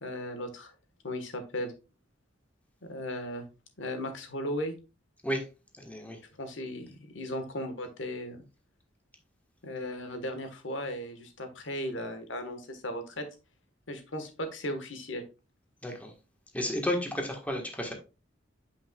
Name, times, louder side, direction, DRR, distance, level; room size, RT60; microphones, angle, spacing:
voice 1, 0.0-0.7 1.0-1.7 2.8-3.4 3.8-4.7 6.4-8.4 9.6-13.2 13.9-15.2, left 1 dB, 90° left, 1.4 m, -36 dB
voice 2, 5.8-6.2 15.8-16.1 16.5-17.9, left 1 dB, 10° left, 1.4 m, -32 dB
8.7 x 5.5 x 2.3 m
head